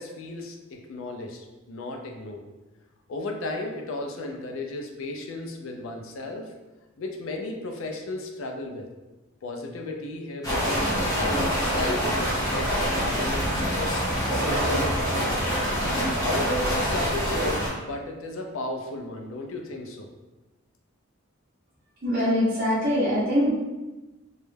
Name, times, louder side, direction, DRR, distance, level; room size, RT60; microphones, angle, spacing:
voice 1, 0.0-2.4 3.1-6.4 7.0-8.9 9.4-14.0 14.3-15.4 16.2-20.1, left 2 dB, 70° left, 2 dB, 0.4 m, -34 dB
sound 1, 10.4-17.7, equal, 20° left, 0.7 m, -25 dB
voice 2, 22.0-23.6, equal, 45° right, -11 dB, 0.6 m, -23 dB
2.2 x 2.0 x 3.1 m, 1.1 s
head